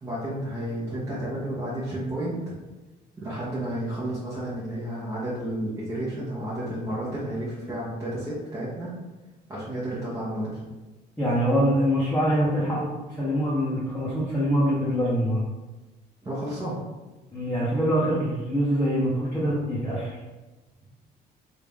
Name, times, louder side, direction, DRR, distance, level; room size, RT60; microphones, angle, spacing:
voice 1, 0.0-2.5 3.2-8.9 9.5-10.6 16.2-16.8, right 1 dB, 20° right, -9 dB, 1.0 m, -31 dB
voice 2, 11.2-15.4 17.3-20.2, equal, 10° left, -10 dB, 1.0 m, -24 dB
3.3 x 2.7 x 3.5 m, 1.2 s
cardioid pair, 110°, 17 cm